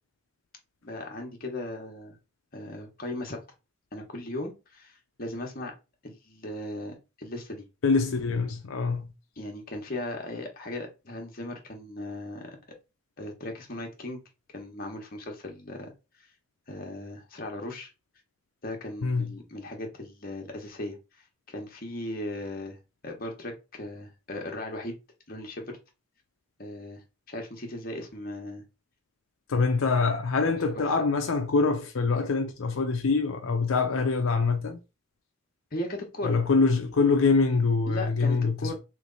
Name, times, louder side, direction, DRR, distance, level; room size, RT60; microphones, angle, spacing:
voice 1, 0.8-2.2 2.5-3.4 3.9-5.7 6.0-7.6 9.4-12.5 13.2-14.2 14.5-15.9 16.7-17.9 18.6-21.0 21.5-22.8 23.0-25.0 25.3-25.8 26.6-28.6 30.4-30.8 35.7-36.4 37.9-38.7, left 1 dB, 45° left, 1.1 m, -37 dB
voice 2, 7.8-9.1 19.0-19.3 29.5-34.8 36.2-38.7, left 4 dB, 80° left, 0.5 m, -24 dB
3.3 x 3.2 x 3.9 m
head